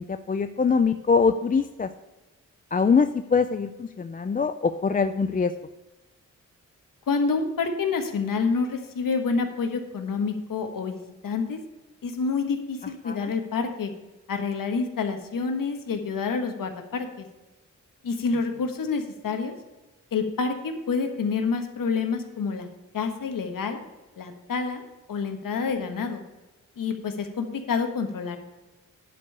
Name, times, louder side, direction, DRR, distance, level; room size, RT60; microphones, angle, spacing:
voice 1, 0.0-1.9 2.7-5.5 13.0-13.3, left 5 dB, 25° left, 10 dB, 0.4 m, -23 dB
voice 2, 7.1-11.6 12.0-13.9 14.3-17.2 18.0-19.5 20.1-22.7 22.9-23.8 24.2-24.8 25.1-26.2 26.8-28.4, left 4 dB, 85° left, 6 dB, 1.4 m, -28 dB
11.0 x 5.4 x 6.7 m, 1.1 s
wide cardioid pair, 135°, 32 cm